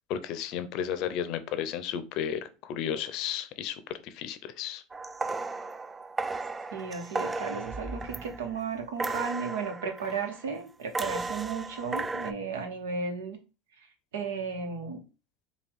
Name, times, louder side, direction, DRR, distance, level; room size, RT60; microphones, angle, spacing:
voice 1, 0.1-4.8, left 9 dB, 60° left, 12 dB, 0.5 m, -33 dB
sound 1, 4.9-8.6 9.0-10.5 10.9-12.3, right 3 dB, 20° right, 0.3 m, -35 dB
voice 2, 6.7-13.4 14.1-15.0, right 5 dB, 85° right, 5 dB, 0.9 m, -34 dB
4.5 x 2.3 x 3.5 m, 0.32 s
supercardioid pair, 100°, 0 cm